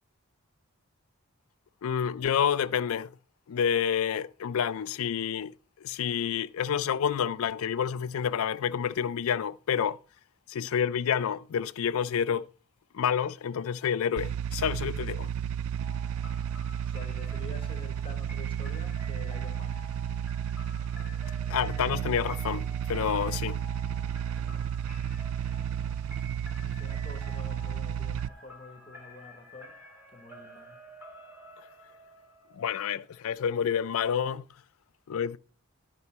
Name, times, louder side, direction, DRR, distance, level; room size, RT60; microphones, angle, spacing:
voice 1, 1.8-3.1 3.5-5.5 5.8-10.0 10.5-12.5 12.9-15.3 21.5-23.6 32.5-34.4 35.1-35.4, left 8 dB, 75° left, 0.4 m, -29 dB
sound 1, 14.2-28.3, right 9 dB, 80° right, 0.3 m, -33 dB
sound 2, 15.8-33.4, right 1 dB, 10° right, 1.6 m, -50 dB
voice 2, 16.8-19.8 26.6-29.8 30.1-30.9, left 2 dB, 25° left, 0.9 m, -48 dB
11.0 x 5.1 x 4.1 m
head